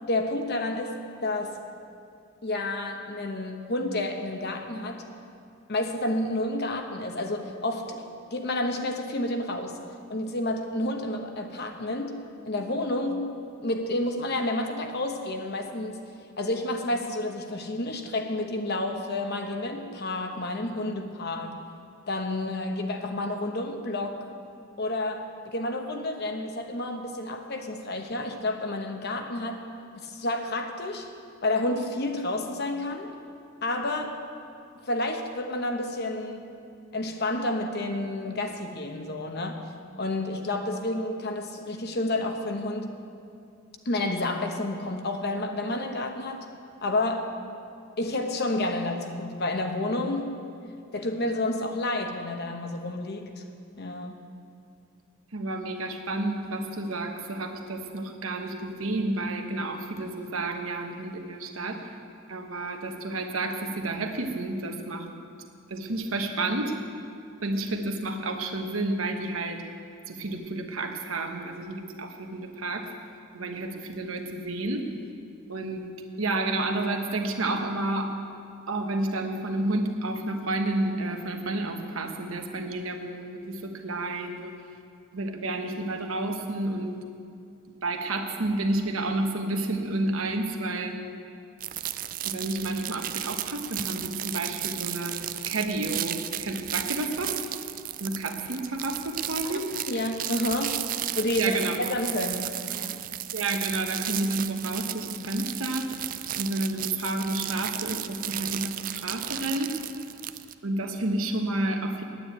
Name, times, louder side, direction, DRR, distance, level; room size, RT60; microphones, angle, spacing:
voice 1, 0.0-1.6 2.4-5.1 5.7-8.0 8.3-9.8 10.1-12.2 12.4-13.2 13.6-16.0 16.4-21.6 22.1-24.2 24.8-29.7 30.0-31.1 31.4-33.1 33.6-34.2 34.9-36.5 36.9-39.6 40.0-42.9 43.8-46.5 46.8-47.3 48.0-50.3 50.9-53.4 53.8-54.2 99.4-99.5 99.9-100.8 101.1-103.0, left 1 dB, 50° left, 4 dB, 1.1 m, -30 dB
voice 2, 55.3-61.8 62.3-65.1 65.7-66.7 67.4-69.6 70.1-72.9 73.3-74.9 75.5-75.8 76.2-78.1 78.7-84.5 85.1-87.0 87.7-90.9 92.2-95.2 95.5-97.4 98.0-99.7 101.4-101.9 103.3-105.9 106.4-109.8 110.6-112.0, right 2 dB, 80° right, 4 dB, 1.2 m, -30 dB
sound 1, 91.6-110.5, right 13 dB, 40° right, 0.3 m, -34 dB
9.4 x 9.3 x 9.2 m, 2.4 s
head